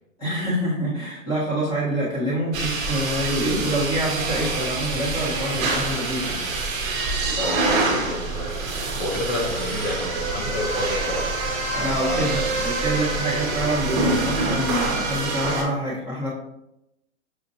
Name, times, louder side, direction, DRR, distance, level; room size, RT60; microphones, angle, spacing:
voice 1, 0.2-6.4 11.7-16.3, right 1 dB, 10° left, -8 dB, 1.2 m, -26 dB
sound 1, 2.5-15.6, right 3 dB, 30° right, 1.0 m, -26 dB
voice 2, 7.3-11.4 12.1-12.5, left 2 dB, 50° left, 0 dB, 0.8 m, -29 dB
6.6 x 2.5 x 2.7 m, 0.85 s
hypercardioid pair, 160°, 41 cm